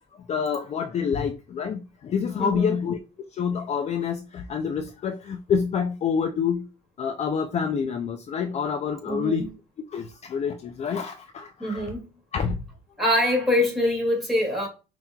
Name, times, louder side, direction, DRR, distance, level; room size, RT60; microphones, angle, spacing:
voice 1, 0.1-3.0 3.3-6.7 7.0-9.5 9.9-11.9 12.3-12.6, left 6 dB, 40° left, 0.4 m, -27 dB
voice 2, 2.4-2.7 9.1-9.5 11.6-12.1 13.0-14.7, left 1 dB, ahead, 2.3 m, -24 dB
5.4 x 2.9 x 2.3 m
cardioid pair, 110°, 17 cm